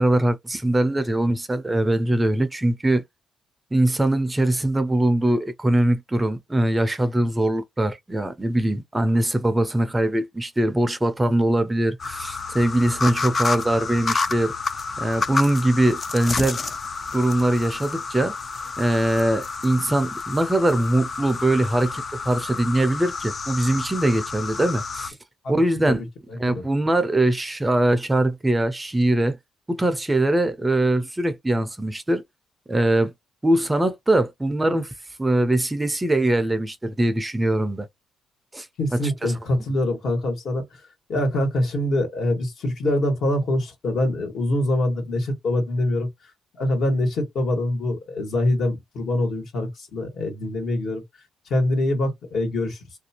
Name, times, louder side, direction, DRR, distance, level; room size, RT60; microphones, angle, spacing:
voice 1, 0.0-3.0 3.7-14.5 15.0-16.6 17.1-18.3 18.8-25.1 25.5-26.0 26.4-29.4 29.7-32.2 32.7-33.1 33.4-34.9 35.2-37.9 38.5-38.7 38.9-39.3, right 1 dB, 15° right, 0.5 m, -22 dB
sound 1, 12.0-25.1, left 4 dB, 35° left, 0.4 m, -30 dB
voice 2, 26.3-26.6 38.8-40.6 41.1-46.1 46.6-51.0 51.5-52.8, left 1 dB, 60° left, 1.5 m, -24 dB
2.5 x 2.3 x 2.8 m
cardioid pair, 90°, 0 cm